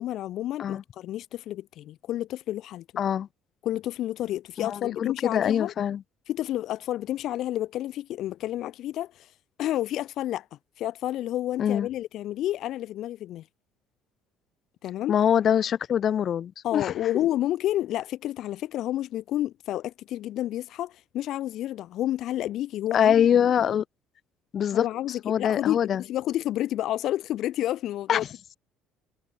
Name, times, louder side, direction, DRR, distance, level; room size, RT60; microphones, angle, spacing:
voice 1, 0.0-2.8 3.6-5.7 6.3-9.3 9.6-10.4 10.8-13.4 14.8-15.2 16.6-23.1 24.7-28.2, left 13 dB, 60° left, 2.9 m, -30 dB
voice 2, 3.0-3.3 4.6-6.0 11.6-11.9 15.1-16.9 22.9-23.8 24.5-26.0 28.1-28.3, left 9 dB, 40° left, 3.2 m, -24 dB
cardioid pair, 135°, 0 cm